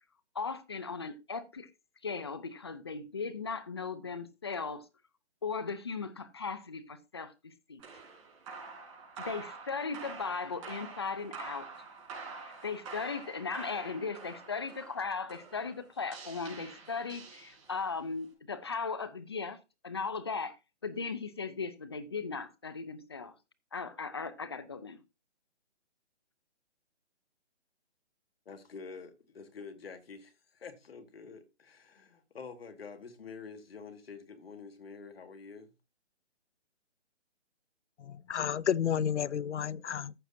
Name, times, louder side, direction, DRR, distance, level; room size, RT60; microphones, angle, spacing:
voice 1, 0.3-1.7 2.0-4.9 5.4-7.8 9.2-11.7 12.4-19.6 19.8-20.6 20.8-23.3 23.7-25.0, left 4 dB, 25° left, 0.5 m, -37 dB
sound 1, 7.8-18.0, right 4 dB, 30° right, 4.4 m, -47 dB
voice 2, 28.5-35.7, left 5 dB, 55° left, 1.9 m, -47 dB
voice 3, 38.1-40.1, left 8 dB, 75° left, 0.6 m, -31 dB
14.5 x 5.9 x 2.7 m
hypercardioid pair, 160°, 35 cm